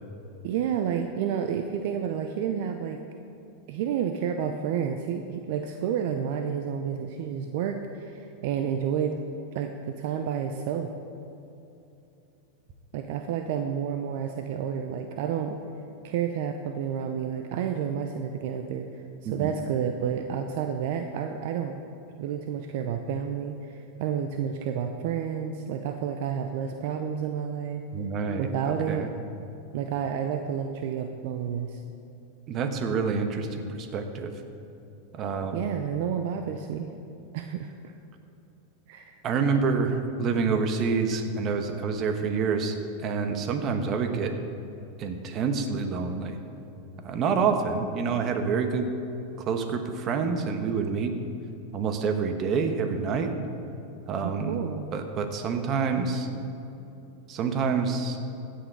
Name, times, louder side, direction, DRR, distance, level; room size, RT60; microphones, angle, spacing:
voice 1, 0.4-3.0 3.7-9.2 9.5-10.9 12.9-15.6 16.0-21.8 22.2-27.8 28.4-29.1 29.7-31.8 35.5-36.9 37.3-37.9 38.9-39.2 54.2-54.8, right 8 dB, 60° right, 6 dB, 0.6 m, -30 dB
voice 2, 27.9-29.1 32.5-34.3 35.1-35.7 39.2-44.3 45.0-46.4 47.0-48.9 49.4-51.1 51.7-53.3 54.1-54.6 54.9-56.3 57.3-58.2, right 5 dB, 40° right, 7 dB, 1.2 m, -27 dB
16.0 x 6.6 x 4.7 m, 2.9 s
hypercardioid pair, 105°, 0 cm